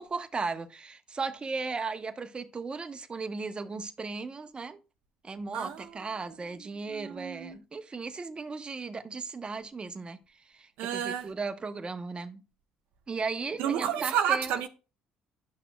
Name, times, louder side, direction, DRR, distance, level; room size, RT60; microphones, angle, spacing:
voice 1, 0.0-4.8 5.2-10.2 10.5-12.4 13.1-14.5, right 4 dB, 30° right, 0.9 m, -36 dB
voice 2, 5.5-6.0 6.9-7.6 10.8-11.3 13.6-14.7, right 9 dB, 75° right, 0.7 m, -30 dB
10.5 x 6.0 x 2.2 m
hypercardioid pair, 60°, 3 cm